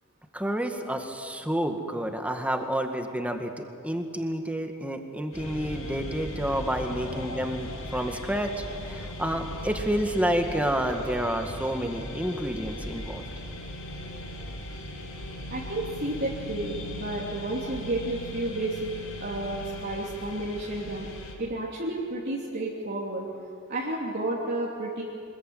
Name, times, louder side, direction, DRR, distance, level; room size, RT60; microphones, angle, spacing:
voice 1, 0.3-13.2, equal, 5° right, 5 dB, 1.9 m, -29 dB
sound 1, 5.3-21.3, left 1 dB, 80° left, 5.7 m, -38 dB
voice 2, 7.1-7.4 15.5-18.8 19.2-21.1 21.4-23.3 23.7-25.0, right 1 dB, 50° right, -5 dB, 3.0 m, -31 dB
25.5 x 21.0 x 9.4 m, 2.4 s
head